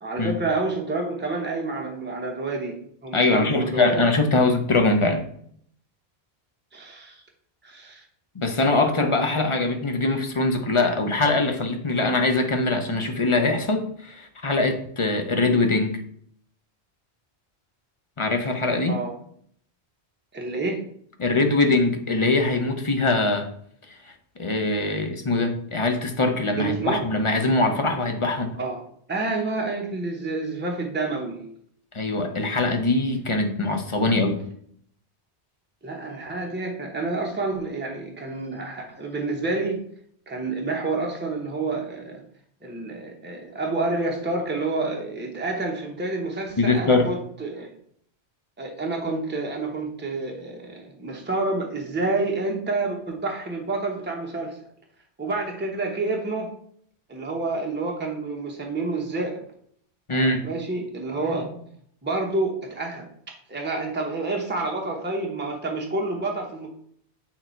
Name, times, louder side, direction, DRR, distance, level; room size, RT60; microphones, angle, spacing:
voice 1, 0.0-2.7 3.0-4.0 6.7-7.2 7.6-8.0 18.9-19.1 20.3-20.8 26.6-27.0 28.6-28.8 29.1-31.5 35.8-39.8 40.3-42.2 42.6-47.7 48.6-54.6 55.2-56.5 57.1-59.4 60.1-61.6 62.0-66.7, right 3 dB, 10° right, 0 dB, 1.0 m, -28 dB
voice 2, 3.1-5.2 8.3-16.0 18.2-19.0 21.2-23.5 24.4-28.6 31.9-34.4 46.6-47.1 60.1-60.4, left 2 dB, 30° left, 5 dB, 0.7 m, -22 dB
6.7 x 3.9 x 4.5 m, 0.64 s
omnidirectional pair, 1.1 m